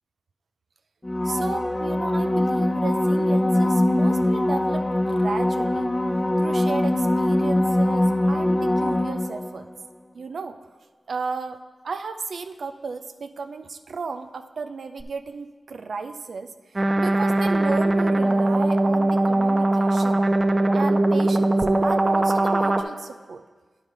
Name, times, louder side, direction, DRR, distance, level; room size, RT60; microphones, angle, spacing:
sound 1, 1.0-9.7 15.0-15.1, left 1 dB, 25° left, 0.6 m, -22 dB
voice 1, 1.2-5.9 6.4-9.7 10.1-10.6 11.1-20.2 20.7-21.6 21.8-23.4, right 4 dB, 85° right, 8 dB, 0.4 m, -34 dB
sound 2, 16.8-22.8, right 2 dB, 40° right, 0.6 m, -20 dB
9.5 x 4.9 x 5.4 m, 1.4 s
cardioid pair, 45°, 0 cm